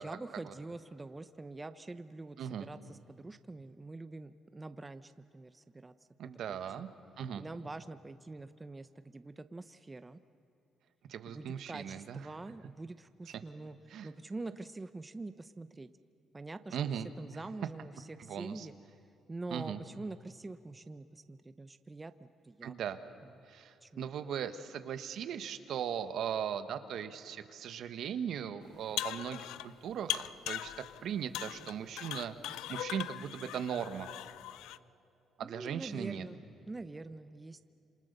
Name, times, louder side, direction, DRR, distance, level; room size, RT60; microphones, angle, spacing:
voice 1, 0.0-5.9 6.5-6.9 7.4-10.2 11.3-13.8 14.0-15.9 16.3-16.8 17.2-18.7 19.3-22.7 23.2-23.3 23.8-24.1 35.4-36.4 36.7-37.7, right 2 dB, 20° right, 11 dB, 0.9 m, -45 dB
voice 2, 2.4-2.7 6.2-6.9 7.2-7.4 11.1-12.2 13.3-13.4 13.9-14.1 16.7-17.1 18.3-18.7 19.5-19.8 22.6-23.0 23.5-30.7 31.0-34.1 35.4-36.2, right 8 dB, 70° right, 10 dB, 1.4 m, -38 dB
sound 1, 28.7-29.7 30.1-31.0 31.3-34.8, left 14 dB, 90° left, 0.5 m, -39 dB
27.0 x 27.0 x 6.8 m, 2.8 s
cardioid pair, 85°, 0 cm